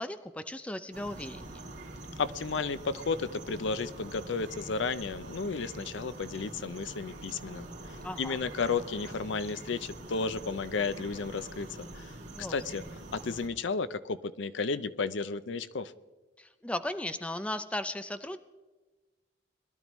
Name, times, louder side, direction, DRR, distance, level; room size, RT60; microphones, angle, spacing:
voice 1, 0.0-1.7 8.0-8.4 12.3-12.6 16.4-18.4, left 1 dB, 5° left, 10 dB, 0.4 m, -36 dB
sound 1, 0.9-13.5, right 1 dB, 70° right, 2.4 m, -45 dB
voice 2, 2.2-7.7 8.2-12.1 12.4-12.8 13.1-15.9, left 4 dB, 75° left, 14 dB, 0.5 m, -33 dB
21.5 x 12.5 x 3.1 m, 1.2 s
head